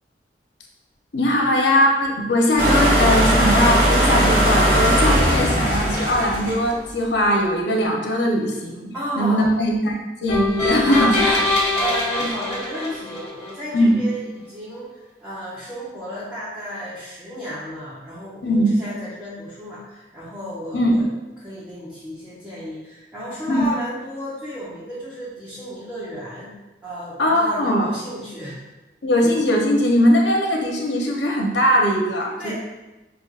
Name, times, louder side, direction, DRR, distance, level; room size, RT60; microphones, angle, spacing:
voice 1, 1.1-9.9 10.2-11.4 13.7-14.0 18.4-18.7 20.7-21.0 23.5-23.6 27.2-27.9 29.0-32.5, equal, 75° left, 0 dB, 0.8 m, -20 dB
sound 1, 2.6-6.8, equal, 55° right, 1.2 m, -18 dB
voice 2, 8.9-9.5 10.8-11.5 11.7-21.1 21.4-26.5 26.8-28.6 32.4-32.5, equal, 5° right, -11 dB, 0.9 m, -32 dB
sound 2, 10.3-13.5, left 2 dB, 35° left, 1.5 m, -23 dB
6.2 x 2.5 x 2.4 m, 1.0 s
head